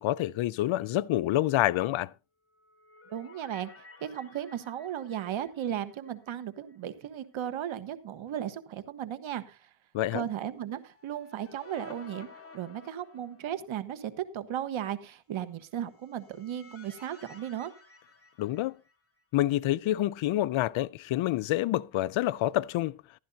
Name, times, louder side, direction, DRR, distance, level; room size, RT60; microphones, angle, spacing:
voice 1, 0.0-2.1 9.9-10.2 18.4-18.7 19.3-23.0, left 15 dB, 80° left, 0.6 m, -27 dB
sound 1, 2.5-6.8 7.1-7.2 10.7-13.8 15.8-19.2, left 4 dB, 30° left, 2.4 m, -54 dB
voice 2, 3.1-3.7 4.0-9.6 10.1-12.3 12.5-17.7, right 10 dB, 85° right, 1.4 m, -35 dB
15.0 x 12.0 x 2.7 m
cardioid pair, 100°, 47 cm